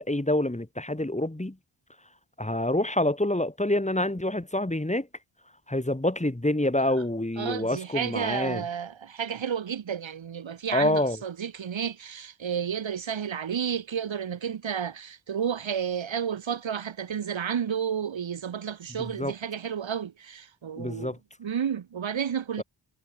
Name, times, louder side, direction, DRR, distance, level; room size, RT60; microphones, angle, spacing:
voice 1, 0.0-1.6 2.4-5.1 5.7-8.6 10.7-11.2 19.0-19.3 20.8-21.2, left 1 dB, 15° left, 4.3 m, -27 dB
voice 2, 7.4-21.1 21.4-22.6, right 8 dB, 70° right, 1.1 m, -31 dB
wide cardioid pair, 80°, 47 cm